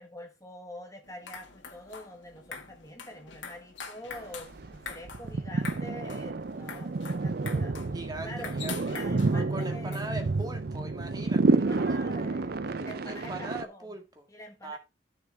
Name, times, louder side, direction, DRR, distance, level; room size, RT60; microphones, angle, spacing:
voice 1, 0.0-7.8 8.2-8.5 8.9-10.0 11.6-14.0 14.3-14.8, left 1 dB, 15° left, 1.4 m, -46 dB
sound 1, 1.0-10.5, left 5 dB, 70° left, 2.1 m, -45 dB
sound 2, 4.1-4.2 4.4-13.6, right 3 dB, 50° right, 0.5 m, -29 dB
voice 2, 7.9-9.0 9.2-11.6 13.0-14.3 14.6-14.8, right 1 dB, 20° right, 1.9 m, -40 dB
13.0 x 6.7 x 3.6 m
head